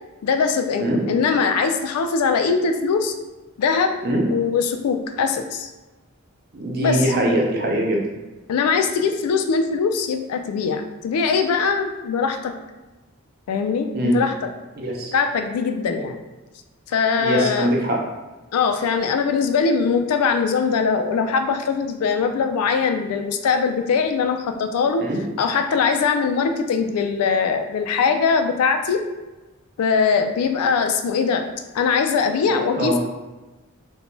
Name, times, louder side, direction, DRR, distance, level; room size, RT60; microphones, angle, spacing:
voice 1, 0.2-3.1 3.6-4.0 4.3-5.7 6.8-7.0 8.5-12.5 13.5-14.5 15.1-16.2 16.9-17.7 18.5-25.1 25.4-29.0 29.8-31.4 31.7-33.0, left 5 dB, 90° left, 7 dB, 0.3 m, -21 dB
voice 2, 6.5-8.0 13.9-14.2 14.8-15.1 17.2-18.0 25.0-25.2 32.4-33.0, right 1 dB, 45° right, 0 dB, 0.5 m, -22 dB
2.6 x 2.2 x 3.0 m, 1.1 s
head